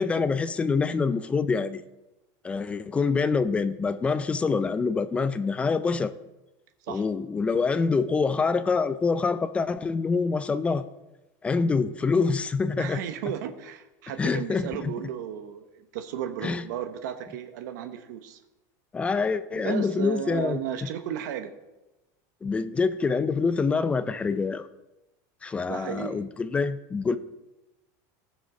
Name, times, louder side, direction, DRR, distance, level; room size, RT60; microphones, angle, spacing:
voice 1, 0.0-1.8 2.4-6.1 6.9-10.8 11.4-13.0 14.2-14.9 16.4-16.6 18.9-20.6 22.4-24.7 25.4-27.2, left 4 dB, 10° left, 13 dB, 0.3 m, -26 dB
voice 2, 12.8-18.4 19.5-21.5 25.7-26.3, right 9 dB, 80° right, 7 dB, 1.0 m, -34 dB
18.0 x 6.4 x 3.8 m, 1.0 s
supercardioid pair, 160°, 10 cm